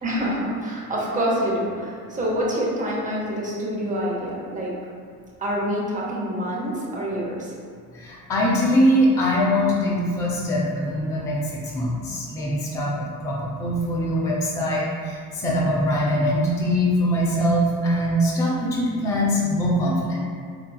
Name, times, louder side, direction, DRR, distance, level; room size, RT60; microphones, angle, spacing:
voice 1, 0.0-4.7 5.4-7.5, equal, 15° right, -4 dB, 0.7 m, -26 dB
voice 2, 7.9-20.2, equal, 10° left, -4 dB, 0.3 m, -22 dB
3.8 x 2.4 x 2.2 m, 2.1 s
figure-of-eight pair, 55°, 47 cm